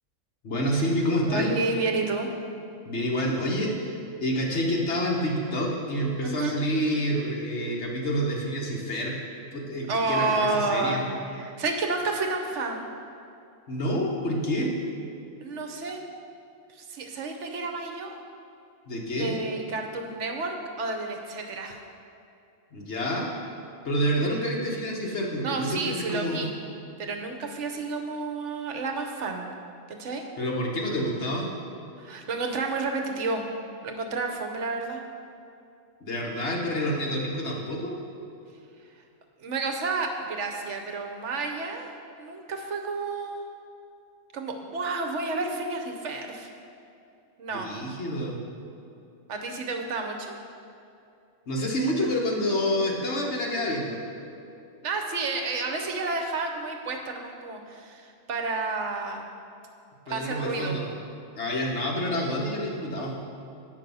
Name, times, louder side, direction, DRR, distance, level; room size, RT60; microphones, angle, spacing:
voice 1, 0.4-1.5 2.8-9.1 9.5-11.0 13.7-14.7 18.9-19.4 22.7-23.3 23.8-26.4 30.4-31.5 36.0-38.0 47.5-48.4 51.5-54.0 60.1-60.9 61.3-63.1, equal, 60° left, -2 dB, 1.4 m, -28 dB
voice 2, 1.3-2.3 6.2-6.5 9.9-11.0 11.3-12.9 15.4-16.0 16.7-18.2 19.2-21.8 25.4-26.5 27.0-29.5 29.9-30.3 32.0-33.5 33.8-35.0 39.4-41.9 42.2-43.5 44.3-46.5 47.4-47.7 49.3-50.4 54.8-59.2 60.1-60.8, right 3 dB, 70° right, 3 dB, 1.0 m, -30 dB
8.2 x 5.2 x 5.4 m, 2.7 s
omnidirectional pair, 1.3 m